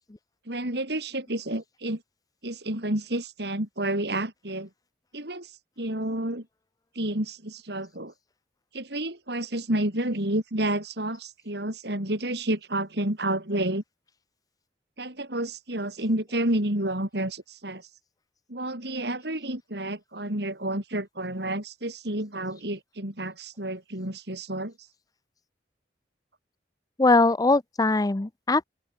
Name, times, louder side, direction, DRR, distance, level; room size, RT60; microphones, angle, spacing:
voice 1, 0.5-2.0 2.4-4.7 5.1-5.5 5.8-6.5 7.0-8.1 8.7-13.8 15.0-17.8 18.5-24.7, right 1 dB, 65° right, 5.7 m, -30 dB
voice 2, 27.0-28.6, left 3 dB, 20° left, 0.6 m, -21 dB
open air
head